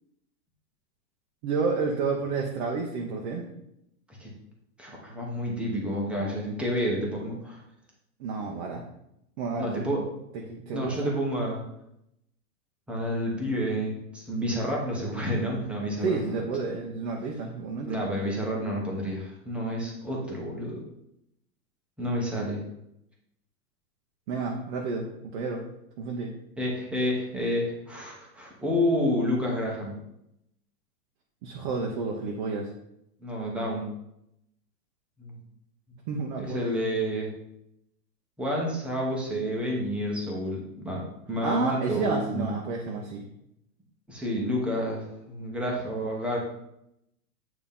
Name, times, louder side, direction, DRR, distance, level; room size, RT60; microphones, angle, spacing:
voice 1, 1.4-3.5 8.2-8.8 9.4-10.0 10.3-11.1 16.0-18.0 24.3-25.6 26.0-26.3 31.4-32.7 36.1-36.8 41.4-43.2, right 4 dB, 30° right, 0 dB, 0.7 m, -30 dB
voice 2, 4.8-7.6 9.6-10.0 10.7-11.6 12.9-16.2 17.8-20.8 22.0-22.6 26.6-29.9 33.2-33.9 35.2-35.4 36.4-37.3 38.4-41.0 41.3-42.5 44.1-46.4, equal, ahead, -3 dB, 0.9 m, -29 dB
8.7 x 2.9 x 5.3 m, 0.80 s
hypercardioid pair, 155°, 47 cm